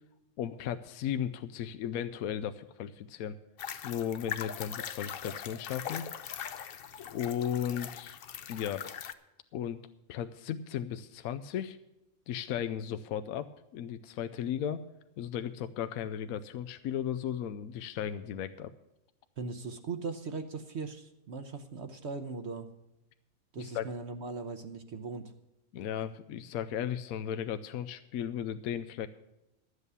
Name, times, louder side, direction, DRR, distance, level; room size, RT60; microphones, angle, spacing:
voice 1, 0.4-3.3 3.8-6.0 7.0-8.2 8.5-8.9 9.5-9.8 10.1-11.8 12.3-14.8 15.2-18.7 23.6-23.8 25.7-29.1, left 9 dB, 85° left, 10 dB, 1.0 m, -35 dB
sound 1, 3.6-9.1, left 8 dB, 55° left, 0.7 m, -41 dB
voice 2, 19.4-22.7 23.5-25.3, right 4 dB, 55° right, 7 dB, 1.0 m, -39 dB
12.5 x 8.2 x 6.8 m, 0.93 s
omnidirectional pair, 1.5 m